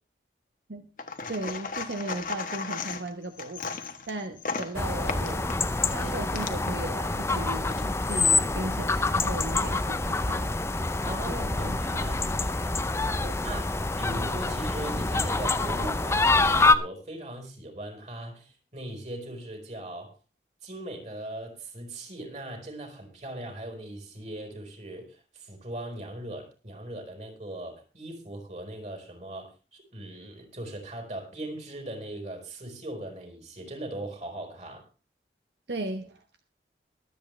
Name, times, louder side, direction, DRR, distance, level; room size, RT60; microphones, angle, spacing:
sound 1, 1.0-6.8 7.5-8.3, left 4 dB, 50° left, 1.3 m, -36 dB
voice 1, 1.3-5.6 5.9-10.5 11.3-12.4 13.2-13.3 35.7-36.4, right 2 dB, 75° right, 6 dB, 1.1 m, -36 dB
sound 2, 4.7-16.7, left 3 dB, 15° left, 0.5 m, -26 dB
voice 2, 11.1-12.8 13.4-13.7 14.0-20.1 20.6-34.9, right 1 dB, 40° right, 2 dB, 4.5 m, -39 dB
23.0 x 8.6 x 3.3 m, 0.33 s
head